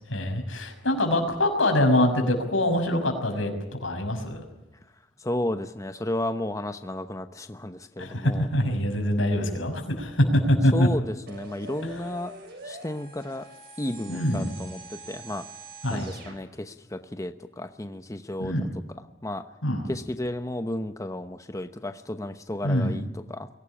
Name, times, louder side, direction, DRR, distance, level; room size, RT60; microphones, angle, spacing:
voice 1, 0.1-4.4 8.0-10.9 11.8-12.0 14.1-14.5 15.8-16.1 18.4-18.7 19.6-19.9 22.6-22.9, left 1 dB, 90° left, 4 dB, 6.0 m, -24 dB
voice 2, 5.2-8.5 10.7-12.3 12.6-13.5 13.8-15.4 15.9-18.7 19.2-19.4 19.9-23.5, left 1 dB, 15° left, 9 dB, 0.9 m, -33 dB
sound 1, 11.3-16.4, right 3 dB, 55° right, 6.9 m, -44 dB
23.5 x 17.5 x 10.0 m, 0.97 s
head